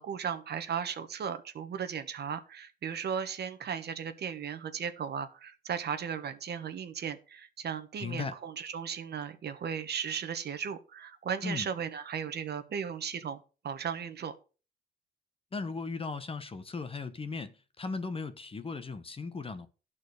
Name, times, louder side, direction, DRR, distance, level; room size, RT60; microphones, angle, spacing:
voice 1, 0.0-14.3, right 7 dB, 55° right, 1.3 m, -36 dB
voice 2, 8.0-8.4 11.4-11.7 15.5-19.7, left 4 dB, 30° left, 1.0 m, -37 dB
11.5 x 4.5 x 6.4 m
cardioid pair, 90°, 20 cm